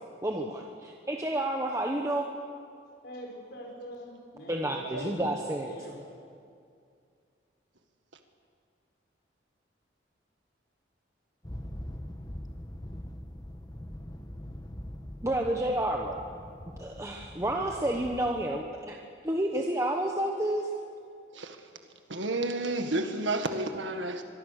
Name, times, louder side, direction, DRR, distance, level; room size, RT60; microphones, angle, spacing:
voice 1, 0.2-2.3 4.5-5.7 15.2-16.2 16.8-19.0 19.2-20.7, right 1 dB, 15° right, 1 dB, 1.3 m, -30 dB
voice 2, 3.0-5.3 5.7-6.0, equal, 60° left, -1 dB, 5.1 m, -44 dB
voice 3, 4.9-5.4 21.3-21.7 22.1-24.2, right 2 dB, 85° right, 6 dB, 1.7 m, -31 dB
sound 1, 11.4-18.6, equal, 20° left, 1.2 m, -43 dB
24.5 x 22.5 x 6.7 m, 2.3 s
head